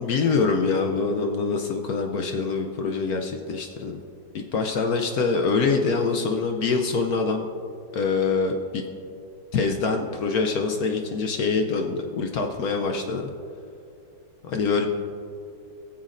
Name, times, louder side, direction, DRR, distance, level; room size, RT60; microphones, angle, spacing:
voice 1, 0.0-4.0 4.3-7.5 7.9-8.8 9.5-13.3 14.4-14.9, left 4 dB, 65° left, 3 dB, 1.0 m, -25 dB
21.0 x 7.2 x 2.5 m, 2.5 s
omnidirectional pair, 2.1 m